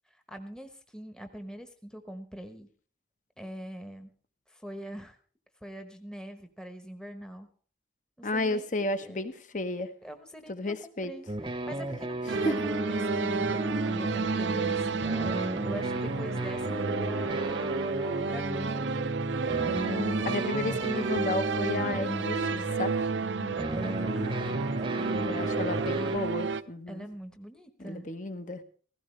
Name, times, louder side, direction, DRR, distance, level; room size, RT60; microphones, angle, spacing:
voice 1, 0.1-2.7 3.4-4.1 4.5-5.2 5.6-7.5 8.2-8.7 9.0-9.3 10.0-15.0 15.6-18.7 23.4-25.4 26.9-28.1, equal, 5° left, 6 dB, 1.1 m, -43 dB
voice 2, 8.2-9.9 10.5-11.1 12.4-12.5 19.6-22.9 25.2-27.0 27.8-28.6, left 2 dB, 45° left, 9 dB, 1.2 m, -32 dB
sound 1, 11.3-26.2, right 1 dB, 25° right, 0.9 m, -34 dB
sound 2, 12.3-26.6, right 4 dB, 90° right, 0.7 m, -31 dB
16.5 x 16.0 x 3.3 m, 0.43 s
head